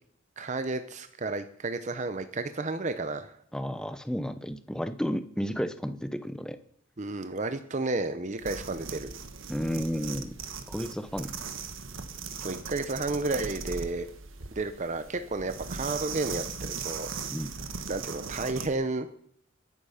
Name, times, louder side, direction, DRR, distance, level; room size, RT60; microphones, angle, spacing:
voice 1, 0.4-3.4 7.0-9.1 12.4-14.1 14.5-17.1 17.9-19.1, right 3 dB, 35° right, 9 dB, 0.8 m, -32 dB
voice 2, 3.5-6.6 9.5-10.4 10.7-11.4 17.3-17.5, equal, 5° left, 11 dB, 0.7 m, -32 dB
sound 1, 8.4-18.7, right 5 dB, 80° right, 1.4 m, -39 dB
21.5 x 8.5 x 5.7 m, 0.65 s
head